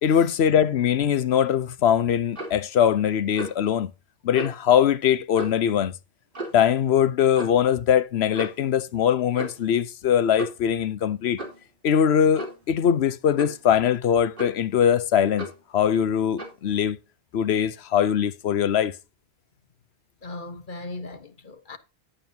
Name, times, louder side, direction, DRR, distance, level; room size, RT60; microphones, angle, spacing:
voice 1, 0.0-3.9 4.2-5.9 6.5-11.4 11.8-15.5 15.7-17.0 17.3-18.9, left 9 dB, 90° left, 1.0 m, -21 dB
Clock, 2.3-2.6 3.4-3.7 4.3-4.6 5.3-5.7 6.3-6.7 7.3-7.6 8.3-8.7 9.3-9.7 10.3-10.7 11.4-11.6 12.3-12.6 13.4-13.6 14.4-14.7 15.4-15.6 16.4-16.6, right 1 dB, 55° right, 3.5 m, -36 dB
voice 2, 20.2-21.8, left 2 dB, 50° left, 1.5 m, -38 dB
11.0 x 9.0 x 2.8 m
omnidirectional pair, 1.0 m